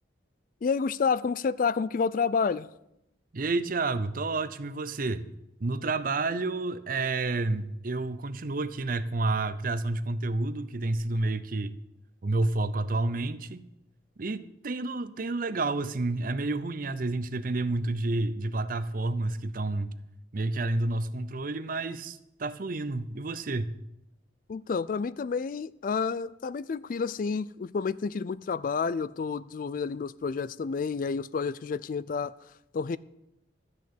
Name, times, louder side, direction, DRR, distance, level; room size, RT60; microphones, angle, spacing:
voice 1, 0.6-2.7 24.5-32.3 32.7-33.0, left 5 dB, 45° left, 0.3 m, -29 dB
voice 2, 3.3-5.3 5.6-11.7 12.2-13.6 14.2-19.9 20.3-23.7, right 2 dB, 45° right, 0.6 m, -30 dB
13.0 x 6.4 x 8.6 m
head